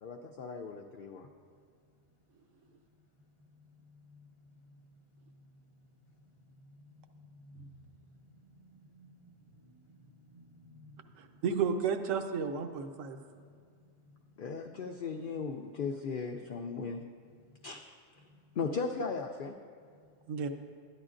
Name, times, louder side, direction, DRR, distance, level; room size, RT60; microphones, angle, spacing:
voice 1, 0.0-1.3 14.4-17.1 17.6-17.8 18.6-19.5, left 5 dB, 75° left, 2 dB, 0.4 m, -37 dB
voice 2, 6.9-11.4 13.4-13.5, equal, 50° right, -4 dB, 0.4 m, -58 dB
voice 3, 11.2-13.2 20.3-20.5, right 6 dB, 75° right, 7 dB, 1.0 m, -32 dB
13.0 x 10.0 x 2.5 m, 2.1 s
omnidirectional pair, 1.4 m